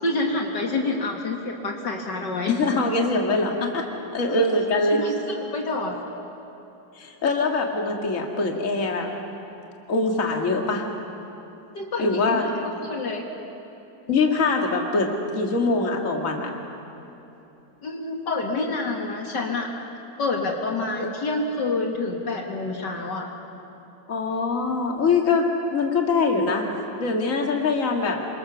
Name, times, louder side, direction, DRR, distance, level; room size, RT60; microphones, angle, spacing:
voice 1, 0.0-2.6 4.3-4.4 4.9-6.0 11.8-13.2 17.8-19.7 20.2-23.3, left 3 dB, 65° left, 1 dB, 2.4 m, -28 dB
voice 2, 2.5-3.9 4.1-5.0 7.0-9.1 9.9-10.8 12.0-12.5 14.1-16.5 21.0-21.1 24.1-25.5 25.7-26.6 27.0-28.2, left 3 dB, 45° left, 1 dB, 2.4 m, -23 dB
27.0 x 25.0 x 7.1 m, 3.0 s
omnidirectional pair, 2.0 m